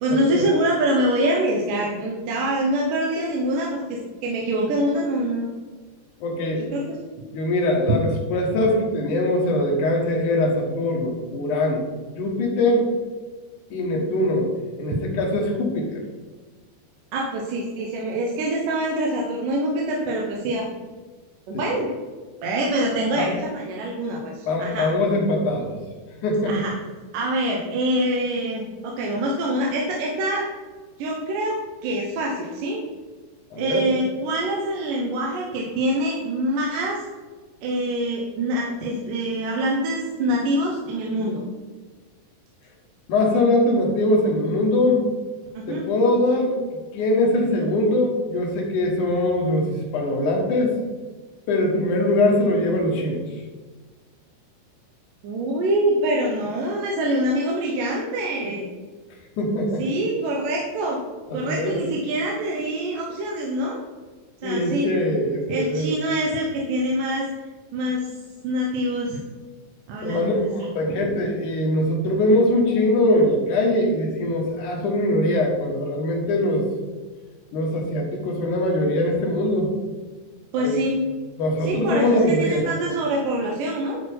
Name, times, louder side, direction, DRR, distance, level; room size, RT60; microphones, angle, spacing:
voice 1, 0.0-5.5 6.6-7.0 17.1-20.6 21.5-21.9 22.4-24.9 26.4-26.7 27.1-30.5 31.0-32.8 33.6-37.0 37.6-41.4 45.5-45.8 55.2-58.7 59.8-61.0 61.3-63.8 64.4-64.9 65.5-67.3 67.7-68.1 68.4-69.2 69.9-70.7 80.5-81.0 81.6-84.0, right 1 dB, 85° right, -1 dB, 2.6 m, -25 dB
voice 2, 6.2-6.7 7.3-12.9 13.7-14.5 14.8-16.0 21.5-21.6 23.1-23.3 24.5-25.8 26.2-26.6 33.5-33.8 43.1-45.0 45.7-46.6 46.9-49.7 49.9-50.8 51.5-53.2 59.4-59.8 61.3-61.8 64.4-65.9 70.0-76.6 77.5-79.7 80.6-80.9 81.4-82.7, left 1 dB, 70° left, 1 dB, 2.9 m, -22 dB
11.0 x 4.5 x 4.6 m, 1.3 s
omnidirectional pair, 3.7 m